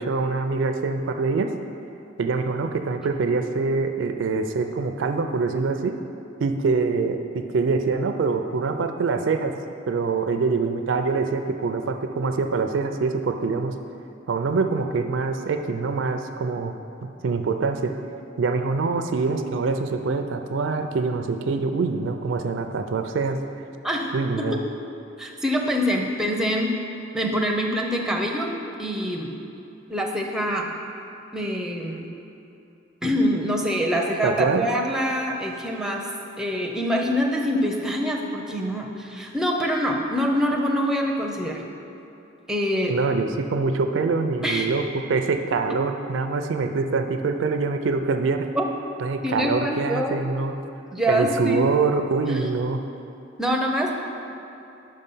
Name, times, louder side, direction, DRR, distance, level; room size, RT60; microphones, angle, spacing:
voice 1, 0.0-1.5 2.2-6.0 6.4-9.5 9.9-13.7 14.3-16.8 17.2-17.9 18.4-23.4 24.1-24.6 34.2-34.7 42.9-48.5 49.0-50.6 51.1-52.8, right 4 dB, 70° right, 6 dB, 0.4 m, -24 dB
voice 2, 25.2-26.8 27.1-28.5 28.8-29.3 29.9-30.7 31.3-32.1 33.0-36.1 36.4-41.6 42.5-43.0 44.4-44.7 48.5-48.6 49.2-50.2 50.9-51.8 52.3-52.5 53.4-53.9, equal, 5° right, 0 dB, 0.5 m, -25 dB
5.5 x 5.3 x 5.4 m, 2.8 s
head